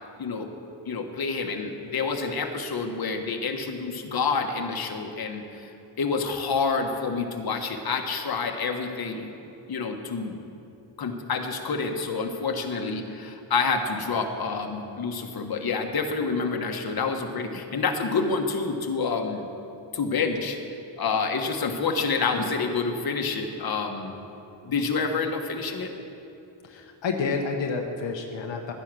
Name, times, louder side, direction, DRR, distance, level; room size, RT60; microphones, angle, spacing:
voice 1, 0.8-9.3 9.7-10.4 11.0-19.5 19.9-20.6 21.0-24.1 24.6-25.9, left 4 dB, 55° left, 4 dB, 1.4 m, -28 dB
voice 2, 26.6-28.7, left 4 dB, 80° left, 3 dB, 1.1 m, -29 dB
12.0 x 9.9 x 6.2 m, 2.8 s
cardioid pair, 85°, 44 cm